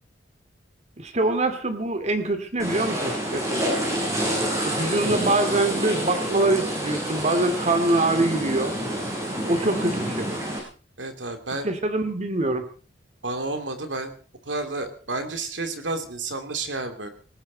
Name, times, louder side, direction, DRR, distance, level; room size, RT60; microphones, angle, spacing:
voice 1, 1.0-3.6 4.6-8.8 9.5-10.3 11.6-12.7, right 2 dB, 40° right, 8 dB, 2.5 m, -24 dB
sound 1, 2.6-10.6, right 1 dB, 20° right, 5.9 m, -28 dB
voice 2, 11.0-11.7 13.2-14.1 14.5-17.1, right 2 dB, 75° right, 7 dB, 2.8 m, -31 dB
19.0 x 18.5 x 4.1 m, 0.40 s
head